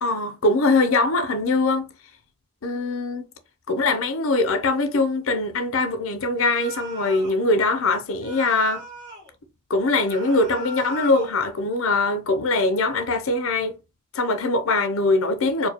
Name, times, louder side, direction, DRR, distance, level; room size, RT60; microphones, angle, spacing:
voice 1, 0.0-1.9 2.6-3.3 3.7-8.8 9.7-13.8 14.1-15.7, left 3 dB, 70° left, 0.7 m, -22 dB
sound 1, 6.4-7.4 8.2-9.3 10.0-11.4, right 1 dB, 15° right, 1.1 m, -38 dB
4.4 x 2.2 x 2.8 m
head